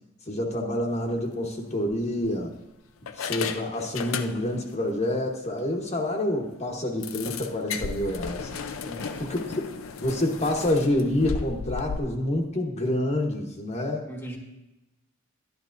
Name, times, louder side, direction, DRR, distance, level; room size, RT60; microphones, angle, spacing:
voice 1, 0.3-2.5 3.2-8.5 9.2-9.4 10.0-14.0, left 1 dB, 35° left, 0 dB, 1.1 m, -27 dB
sound 1, 1.0-1.2 1.9-2.6 3.1-4.7 5.0-5.2 5.6-5.7 6.0-6.1 7.0-12.0, left 5 dB, 85° left, 0.6 m, -35 dB
voice 2, 8.8-9.3 14.0-14.4, right 1 dB, 10° left, 1 dB, 1.2 m, -39 dB
12.0 x 11.0 x 2.6 m, 0.94 s
head